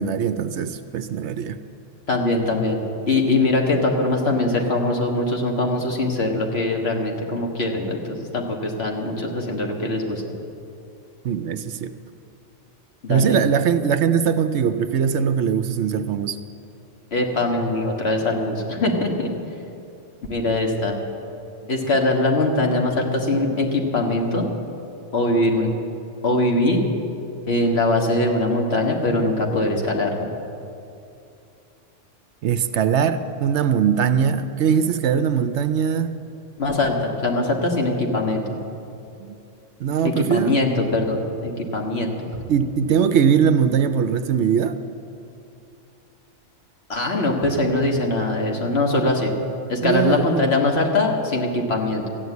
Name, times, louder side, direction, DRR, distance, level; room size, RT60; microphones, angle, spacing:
voice 1, 0.0-1.6 11.2-11.9 13.1-16.4 32.4-36.1 39.2-39.4 39.8-40.6 42.5-44.8 49.8-50.4, right 7 dB, 70° right, 11 dB, 0.9 m, -21 dB
voice 2, 2.1-10.2 13.0-13.4 17.1-19.3 20.3-20.9 21.7-24.5 25.1-25.7 26.2-26.8 27.5-30.3 36.6-38.4 40.3-42.4 46.9-49.3 49.7-52.1, left 2 dB, 55° left, 1 dB, 1.8 m, -22 dB
14.0 x 9.5 x 8.2 m, 2.7 s
omnidirectional pair, 1.3 m